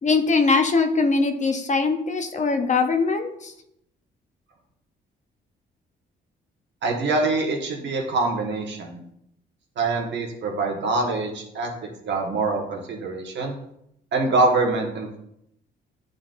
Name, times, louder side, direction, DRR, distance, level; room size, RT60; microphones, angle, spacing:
voice 1, 0.0-3.5, left 4 dB, 35° left, 6 dB, 0.7 m, -21 dB
voice 2, 6.8-9.0 9.8-11.7 12.0-13.5 14.1-15.2, right 3 dB, 65° right, 1 dB, 1.4 m, -24 dB
9.4 x 3.9 x 2.6 m, 0.77 s
cardioid pair, 90°, 20 cm